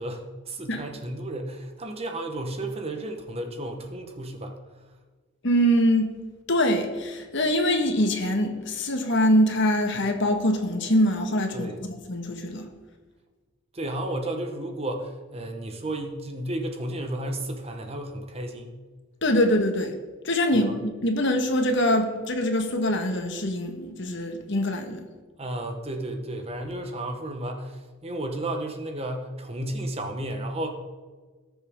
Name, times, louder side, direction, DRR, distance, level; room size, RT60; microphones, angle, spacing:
voice 1, 0.0-4.6 11.5-11.8 13.7-18.8 20.5-20.8 25.4-30.7, right 1 dB, 30° right, 4 dB, 1.2 m, -33 dB
voice 2, 5.4-6.1 6.5-11.7 12.1-12.7 19.2-19.9 20.2-25.0, equal, 60° left, 5 dB, 1.5 m, -23 dB
19.0 x 7.1 x 3.7 m, 1.3 s
head